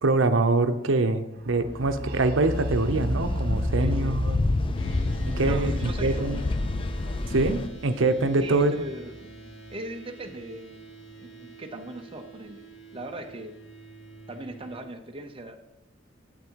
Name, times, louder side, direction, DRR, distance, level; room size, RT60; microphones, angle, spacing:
voice 1, 0.0-4.4 5.3-6.4 7.3-8.8, right 2 dB, 80° right, 9 dB, 0.8 m, -24 dB
sound 1, 1.4-9.2, equal, 50° right, 1.0 m, -33 dB
sound 2, 2.5-7.7, left 2 dB, 25° left, 0.4 m, -29 dB
voice 2, 3.8-4.2 5.4-6.5 8.4-10.8 11.2-13.6 14.3-15.6, right 1 dB, 30° right, 5 dB, 0.8 m, -39 dB
sound 3, 4.7-14.8, right 3 dB, 75° left, 1.7 m, -47 dB
8.3 x 8.1 x 4.6 m, 0.89 s
head